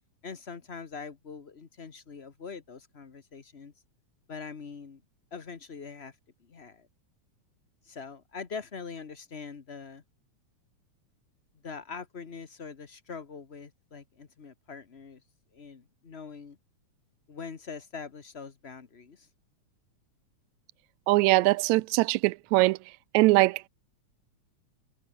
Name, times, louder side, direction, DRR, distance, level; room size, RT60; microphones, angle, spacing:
voice 1, 0.2-3.7 4.3-5.0 5.3-6.9 7.8-10.0 11.6-15.2 15.5-16.6 17.3-19.3, left 5 dB, 80° left, 0.5 m, -43 dB
voice 2, 21.1-22.8 23.1-23.7, right 21 dB, 80° right, 1.8 m, -22 dB
omnidirectional pair, 3.5 m